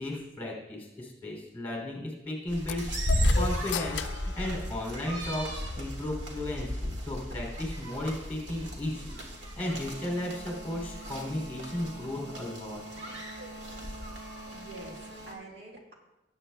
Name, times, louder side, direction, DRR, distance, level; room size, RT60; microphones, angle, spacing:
voice 1, 0.0-4.0 4.2-9.1 9.5-12.8, left 1 dB, 10° left, -3 dB, 2.9 m, -35 dB
sound 1, 2.5-15.3, equal, 85° right, 1.9 m, -34 dB
sound 2, 2.7-5.4, left 8 dB, 75° left, 0.4 m, -38 dB
voice 2, 14.4-15.9, right 2 dB, 65° right, -2 dB, 1.9 m, -46 dB
18.0 x 8.3 x 2.3 m, 0.98 s
head